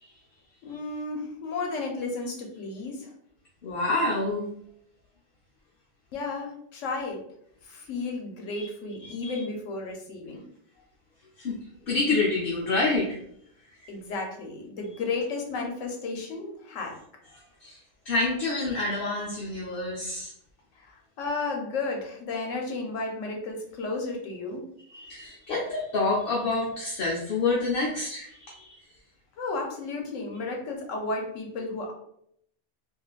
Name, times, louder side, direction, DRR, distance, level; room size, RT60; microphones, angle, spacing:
voice 1, 0.6-3.1 6.1-7.2 7.6-10.5 13.9-17.0 20.8-24.7 29.4-31.9, left 3 dB, 90° left, 1 dB, 1.1 m, -33 dB
voice 2, 3.6-4.5 8.6-8.7 9.0-9.3 11.4-11.6 11.9-13.2 17.6-17.8 18.0-20.3 24.9-28.8, left 3 dB, 55° left, -3 dB, 0.8 m, -27 dB
3.2 x 2.6 x 2.3 m, 0.69 s
omnidirectional pair, 1.3 m